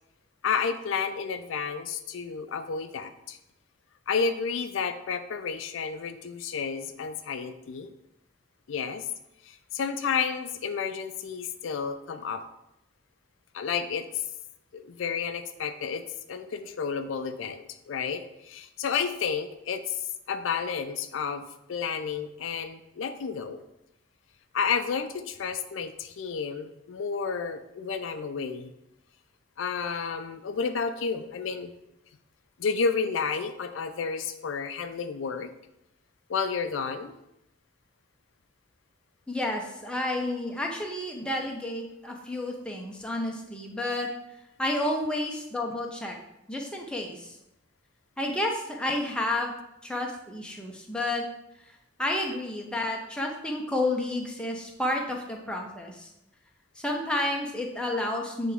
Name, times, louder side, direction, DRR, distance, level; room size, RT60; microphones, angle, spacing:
voice 1, 0.4-3.4 4.1-7.9 8.7-9.0 9.4-12.4 13.5-14.2 14.7-20.0 20.3-23.6 24.5-28.7 29.6-31.7 32.6-35.5 36.3-37.1, left 6 dB, 75° left, 8 dB, 0.4 m, -31 dB
voice 2, 39.3-44.1 44.6-46.2 46.5-47.3 48.2-49.5 49.8-51.2 52.0-56.1 56.8-58.5, left 1 dB, 5° left, 0 dB, 0.7 m, -30 dB
8.1 x 3.4 x 3.5 m, 0.85 s
head